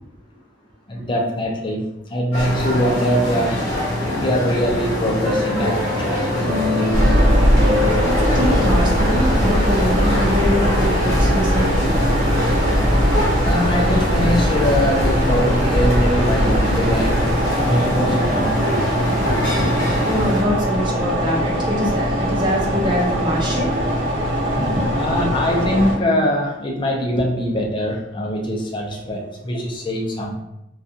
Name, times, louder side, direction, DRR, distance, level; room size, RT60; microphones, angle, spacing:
voice 1, 0.9-3.7 4.0-7.0 13.5-17.2 17.5-18.7 22.4-22.6 24.6-30.4, equal, 25° left, -1 dB, 0.4 m, -22 dB
sound 1, 2.3-20.4, left 1 dB, 65° left, 0.8 m, -24 dB
sound 2, 5.2-14.4, left 2 dB, 55° right, 1.0 m, -28 dB
sound 3, 6.9-25.9, equal, 80° right, 0.8 m, -20 dB
voice 2, 7.3-12.7 16.1-17.3 18.0-19.7 20.0-23.9 24.7-24.8 25.1-25.3 27.2-27.3, equal, 25° right, -3 dB, 0.6 m, -25 dB
2.4 x 2.3 x 2.6 m, 0.88 s
head